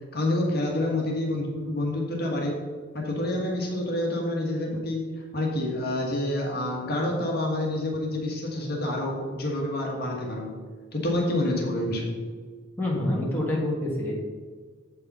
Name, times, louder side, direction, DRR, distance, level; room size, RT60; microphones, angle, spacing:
voice 1, 0.1-2.6 2.9-10.5 10.9-12.2, left 1 dB, 45° left, -1 dB, 1.6 m, -28 dB
voice 2, 12.8-14.1, left 1 dB, 10° left, -5 dB, 1.5 m, -26 dB
7.8 x 5.6 x 5.5 m, 1.5 s
head